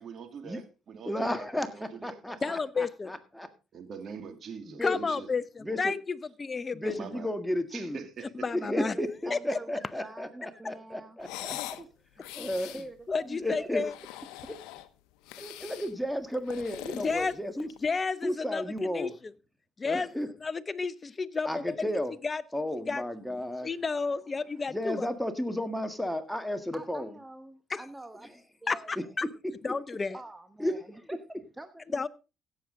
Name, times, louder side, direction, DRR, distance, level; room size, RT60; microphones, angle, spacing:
voice 1, 0.0-2.5 3.7-5.3 5.6-5.8 6.8-7.3 7.7-8.7, right 6 dB, 55° right, 2.4 m, -43 dB
voice 2, 1.0-1.7 2.0-2.8 3.4-3.5 4.7-5.0 5.7-5.8 6.7-8.0 8.7-11.5 12.3-12.7 13.4-13.8 15.4-17.7 18.2-19.1 19.8-20.3 21.5-22.1 22.5-23.7 24.7-27.1 30.6-30.7, left 1 dB, 5° left, 1.7 m, -33 dB
voice 3, 2.4-3.1 4.8-7.0 8.3-9.0 9.3-9.6 13.1-14.0 16.9-17.3 17.8-19.3 19.8-20.1 20.4-22.4 22.9-23.0 23.6-25.1 27.7-27.8 28.7-29.3 29.6-30.2 31.9-32.1, left 4 dB, 30° left, 0.8 m, -31 dB
voice 4, 8.7-11.9 12.7-13.4 26.7-28.3 28.6-28.9 29.7-29.8 30.1-32.0, right 2 dB, 15° right, 1.1 m, -46 dB
sound 1, 11.2-11.8 12.2-12.9 13.7-14.9 15.3-15.9 16.3-17.9, left 14 dB, 85° left, 0.8 m, -42 dB
16.0 x 7.3 x 3.7 m
supercardioid pair, 75°, 0 cm